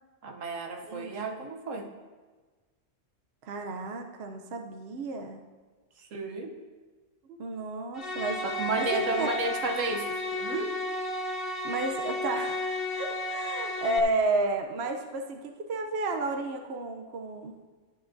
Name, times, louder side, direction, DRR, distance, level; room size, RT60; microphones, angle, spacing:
voice 1, 0.2-1.9 6.0-6.6 8.4-10.8, right 3 dB, 75° right, 4 dB, 1.2 m, -32 dB
voice 2, 0.9-1.4 3.4-5.4 7.3-8.4 8.9-9.3 11.4-12.6 12.9-17.5, right 2 dB, 60° right, 4 dB, 0.9 m, -32 dB
sound 1, 7.9-14.0, left 1 dB, 50° left, 1.0 m, -33 dB
13.0 x 9.2 x 2.6 m, 1.4 s
omnidirectional pair, 1.3 m